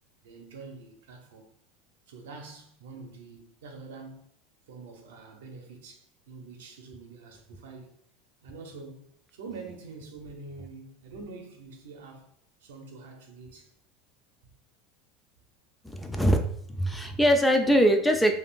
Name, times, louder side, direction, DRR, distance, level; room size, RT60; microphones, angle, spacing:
voice 1, 0.2-1.5 2.1-4.3 4.7-8.0 8.4-12.3 12.6-13.7, right 4 dB, 90° right, 0.7 m, -45 dB
voice 2, 15.8-18.4, equal, 5° left, 0.4 m, -23 dB
3.5 x 2.4 x 2.5 m
supercardioid pair, 120°, 0 cm